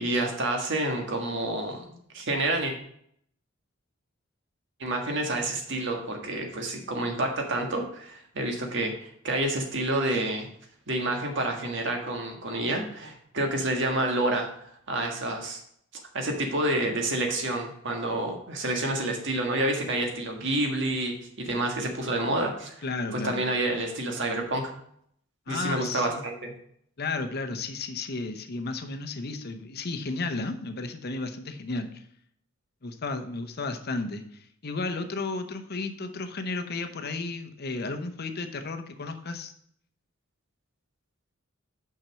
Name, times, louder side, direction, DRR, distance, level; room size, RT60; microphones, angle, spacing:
voice 1, 0.0-2.7 4.8-10.5 10.9-15.6 16.1-22.8 23.1-24.7 25.5-26.5, right 1 dB, 65° right, 2 dB, 1.6 m, -29 dB
voice 2, 22.8-23.4 25.5-26.2 27.0-32.0 32.8-39.5, left 3 dB, 50° left, 7 dB, 0.8 m, -33 dB
6.0 x 5.8 x 6.2 m, 0.67 s
head